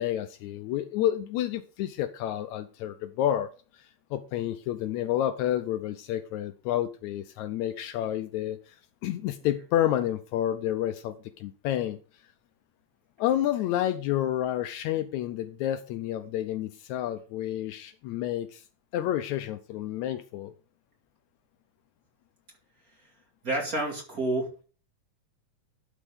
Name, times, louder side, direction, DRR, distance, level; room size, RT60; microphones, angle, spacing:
voice 1, 0.0-3.8 4.1-8.8 9.0-12.0 13.2-18.6 18.9-20.5, left 12 dB, 80° left, 1.8 m, -29 dB
voice 2, 23.4-24.6, right 2 dB, 30° right, 2.4 m, -29 dB
12.0 x 6.2 x 3.7 m
omnidirectional pair, 3.6 m